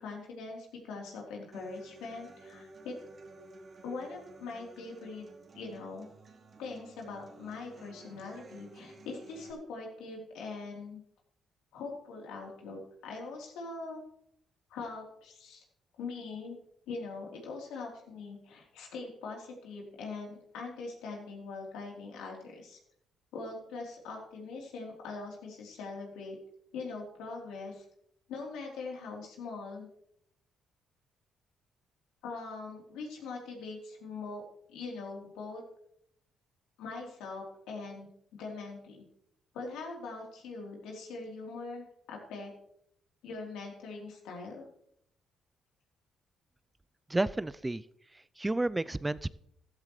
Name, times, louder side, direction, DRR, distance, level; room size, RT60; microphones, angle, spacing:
voice 1, 0.0-2.9 3.8-5.2 5.5-6.1 6.6-11.0 11.7-14.0 14.7-15.6 16.0-16.6 16.9-22.8 23.3-26.4 26.7-27.9 28.3-29.9 32.2-34.4 34.7-35.6 36.8-39.1 39.5-42.5 43.2-44.7, left 3 dB, 85° left, -1 dB, 3.6 m, -42 dB
Human voice / Acoustic guitar, 1.5-9.5, right 3 dB, 45° right, 2.7 m, -53 dB
voice 2, 47.1-47.8 48.1-49.3, right 2 dB, 15° right, 17 dB, 0.4 m, -31 dB
14.5 x 13.0 x 3.2 m, 0.71 s
supercardioid pair, 70°, 0 cm